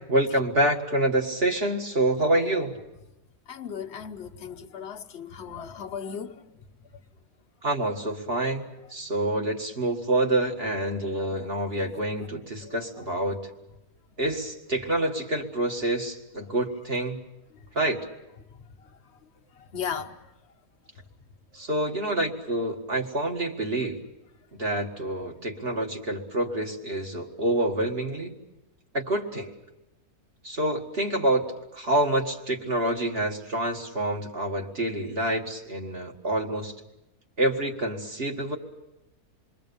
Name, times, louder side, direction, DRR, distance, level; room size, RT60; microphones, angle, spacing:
voice 1, 0.1-2.8 7.6-13.4 14.2-17.2 17.7-18.0 21.5-24.0 24.6-28.3 28.9-29.5 30.4-31.4 31.7-36.7 37.4-38.6, right 1 dB, 40° right, 2.1 m, -27 dB
voice 2, 3.5-6.5 11.4-11.5 12.6-12.8 19.6-20.2, left 7 dB, 45° left, 1.3 m, -36 dB
28.0 x 22.0 x 7.0 m
omnidirectional pair, 1.6 m